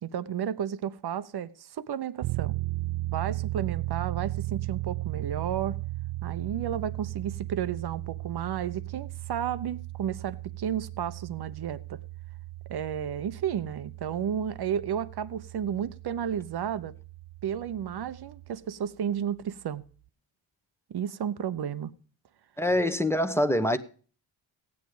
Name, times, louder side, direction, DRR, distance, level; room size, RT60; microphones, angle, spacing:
voice 1, 0.0-2.6 3.1-5.8 6.2-12.0 12.7-16.9 17.4-19.8 20.9-21.9, right 9 dB, 55° right, 0.9 m, -32 dB
sound 1, 2.2-18.6, right 18 dB, 90° right, 0.6 m, -36 dB
voice 2, 22.6-23.8, left 1 dB, 5° left, 1.0 m, -24 dB
15.0 x 9.6 x 4.9 m
cardioid pair, 95°, 48 cm